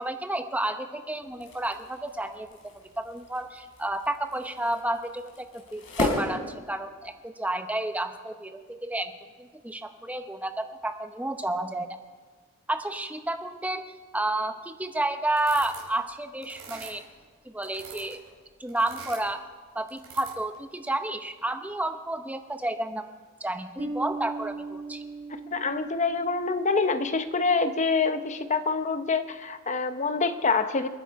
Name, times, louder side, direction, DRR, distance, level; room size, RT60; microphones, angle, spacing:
voice 1, 0.0-6.4 6.7-9.1 9.4-11.9 12.7-13.8 14.1-17.0 17.5-18.2 18.6-19.5 19.7-23.0 23.4-25.0, right 1 dB, 5° right, 8 dB, 0.8 m, -31 dB
sound 1, 1.2-7.2, left 2 dB, 70° left, 4.1 m, -36 dB
sound 2, 15.4-16.0 16.4-17.2 17.6-18.3 18.7-19.4 19.9-20.6, right 5 dB, 80° right, 4.7 m, -44 dB
Bass guitar, 23.8-27.3, right 2 dB, 30° right, 1.4 m, -38 dB
voice 2, 25.5-30.9, left 4 dB, 35° left, 9 dB, 0.9 m, -26 dB
28.5 x 9.9 x 4.7 m, 1.5 s
head